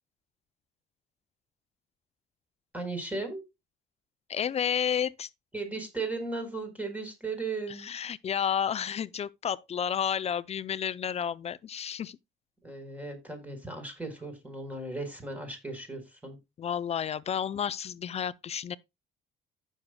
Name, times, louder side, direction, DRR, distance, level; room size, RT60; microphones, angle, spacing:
voice 1, 2.7-3.4 5.5-7.9 12.6-16.4, right 3 dB, 10° right, 4.2 m, -36 dB
voice 2, 4.3-5.3 7.8-12.2 16.6-18.8, left 8 dB, 40° left, 0.6 m, -31 dB
14.5 x 6.5 x 2.2 m
cardioid pair, 110°, 17 cm